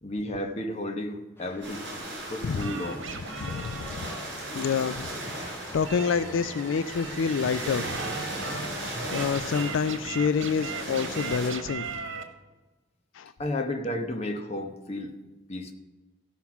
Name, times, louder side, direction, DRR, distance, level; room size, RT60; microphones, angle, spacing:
voice 1, 0.0-1.8 2.3-3.1 8.4-8.6 13.4-15.1 15.5-15.7, left 1 dB, 30° left, 5 dB, 1.0 m, -32 dB
sound 1, 1.4-9.8, left 1 dB, 10° left, 0.7 m, -48 dB
sound 2, 1.6-11.5, right 1 dB, 60° right, 3.7 m, -37 dB
voice 2, 2.4-2.7 3.4-4.1 4.5-5.1 5.7-8.0 8.8-11.9 13.1-13.3, left 6 dB, 80° left, 13 dB, 0.4 m, -28 dB
sound 3, 2.5-12.2, right 4 dB, 85° right, 1.4 m, -39 dB
15.5 x 5.7 x 5.9 m, 1.2 s
head